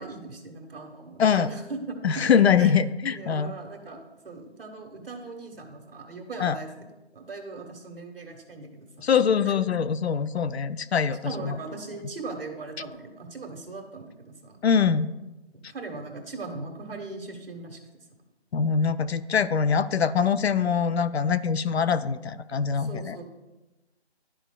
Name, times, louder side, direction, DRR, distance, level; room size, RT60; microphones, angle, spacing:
voice 1, 0.0-2.8 3.1-6.7 7.1-9.1 9.4-9.7 11.2-14.6 15.5-17.8 22.7-23.2, right 3 dB, 55° right, 2 dB, 1.5 m, -39 dB
voice 2, 1.2-1.5 2.0-3.5 6.4-6.6 9.0-11.6 14.6-15.1 18.5-23.2, left 7 dB, 75° left, 14 dB, 0.5 m, -23 dB
12.0 x 5.0 x 2.2 m, 1.1 s
figure-of-eight pair, 165°, 33 cm